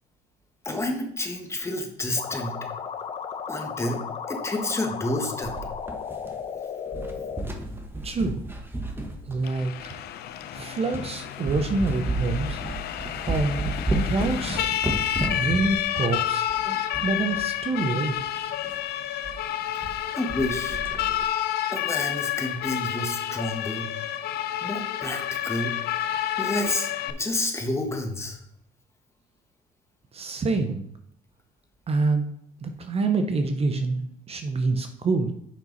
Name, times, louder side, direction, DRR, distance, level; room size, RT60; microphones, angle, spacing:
voice 1, 0.6-2.6 3.5-5.6 20.1-20.8 21.7-23.9 24.6-25.7 26.4-28.4, left 1 dB, 15° left, 3 dB, 1.5 m, -30 dB
sound 1, 2.2-7.4, left 7 dB, 40° left, 0.8 m, -34 dB
sound 2, 5.4-6.6 6.9-9.9 10.4-10.5 10.9-11.1 11.4-17.5 17.8-17.9 18.1-18.2 18.6-18.8 19.2-19.4 19.6-20.0 20.3-21.2, right 1 dB, 15° right, 1.1 m, -32 dB
voice 2, 8.0-8.4 9.3-10.0 10.5-12.6 13.2-14.7 15.3-16.5 17.0-18.1 30.1-30.9 31.9-32.3 32.6-35.3, right 3 dB, 35° right, 7 dB, 0.8 m, -26 dB
Siren, 9.4-27.1, left 12 dB, 70° left, 0.6 m, -30 dB
7.4 x 5.5 x 4.1 m, 0.70 s
cardioid pair, 110°, 17 cm